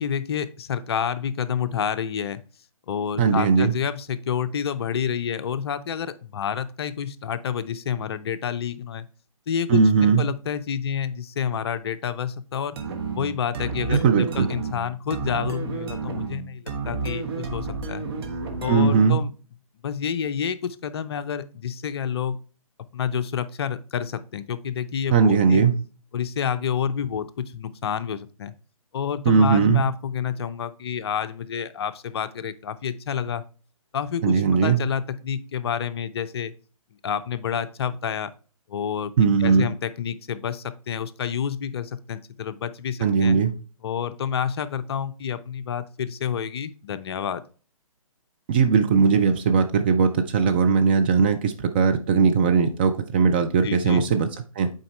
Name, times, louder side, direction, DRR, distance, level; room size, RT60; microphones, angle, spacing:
voice 1, 0.0-2.4 2.9-9.1 9.5-12.8 13.1-18.1 18.6-19.3 19.8-22.4 22.9-25.6 26.1-28.5 28.9-33.4 33.9-36.5 37.0-38.3 38.7-39.1 39.4-43.4 43.8-47.4 53.6-54.1, left 8 dB, 45° left, 12 dB, 0.5 m, -29 dB
voice 2, 3.2-3.7 9.7-10.2 13.9-14.5 18.7-19.2 25.1-25.7 29.3-29.8 34.2-34.8 39.2-39.7 43.0-43.5 48.5-54.3 54.6-54.7, right 5 dB, 20° right, 6 dB, 0.3 m, -19 dB
sound 1, 12.8-19.2, right 4 dB, 45° right, 1.3 m, -31 dB
7.6 x 4.5 x 3.1 m, 0.38 s
figure-of-eight pair, 140°, 18 cm